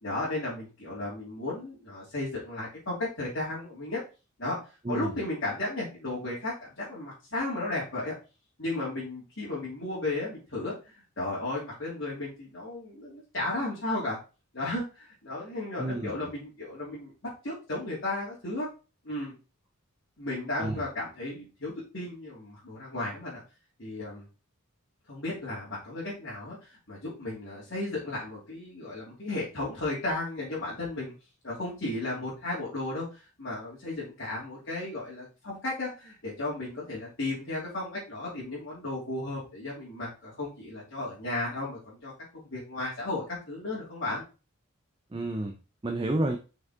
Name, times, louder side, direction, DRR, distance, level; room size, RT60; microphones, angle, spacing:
voice 1, 0.0-4.0 4.4-4.6 4.9-8.1 8.6-14.2 14.5-17.1 17.4-18.7 19.0-19.3 20.2-23.4 23.8-24.2 25.1-31.1 31.4-33.1 33.4-44.2, left 2 dB, 55° left, -9 dB, 3.0 m, -34 dB
voice 2, 15.8-16.3 20.6-20.8 45.1-45.6 45.8-46.4, right 1 dB, 25° right, 4 dB, 0.5 m, -30 dB
6.0 x 5.3 x 3.7 m, 0.32 s
head